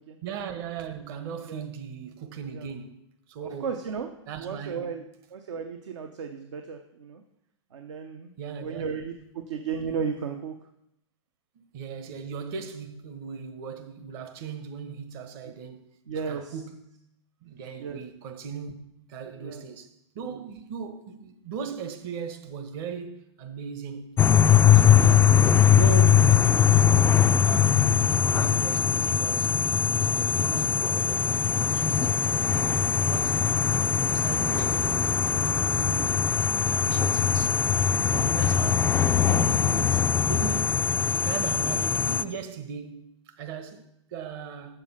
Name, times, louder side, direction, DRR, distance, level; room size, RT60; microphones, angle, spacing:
voice 1, 0.2-3.0 3.3-3.8 4.3-5.0 8.4-8.9 11.5-15.8 16.1-16.8 17.4-18.7 19.1-24.2 24.7-27.8 28.3-29.5 30.0-31.4 31.7-33.5 34.1-36.3 36.7-37.6 38.0-38.9 39.2-44.8, right 6 dB, 50° right, 1.3 m, -38 dB
voice 2, 3.4-4.1 4.4-5.0 5.3-7.2 7.7-8.3 8.6-10.5 15.4-15.5 16.1-16.6 17.8-18.0 19.4-19.6, right 6 dB, 75° right, 0.9 m, -34 dB
sound 1, 24.2-42.2, left 8 dB, 15° left, 0.3 m, -21 dB
7.5 x 7.0 x 5.7 m
hypercardioid pair, 115°, 16 cm